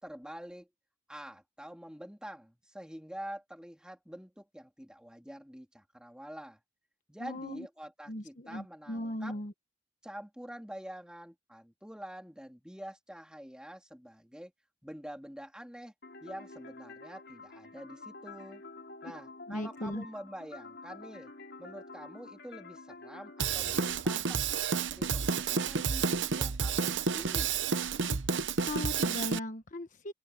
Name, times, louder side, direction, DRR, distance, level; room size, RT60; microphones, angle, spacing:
voice 1, 0.0-0.7 1.1-6.6 7.1-9.3 10.0-14.5 14.8-15.9 16.2-18.6 19.0-21.3 21.6-27.5, equal, 5° right, 3.4 m, -46 dB
voice 2, 7.2-7.7 8.1-9.5 19.5-20.0 28.1-28.2 28.6-30.1, left 1 dB, 45° left, 1.2 m, -38 dB
sound 1, 16.0-24.0, left 3 dB, 65° left, 3.3 m, -49 dB
Drum kit / Drum, 23.4-29.4, right 5 dB, 75° right, 0.8 m, -30 dB
open air
head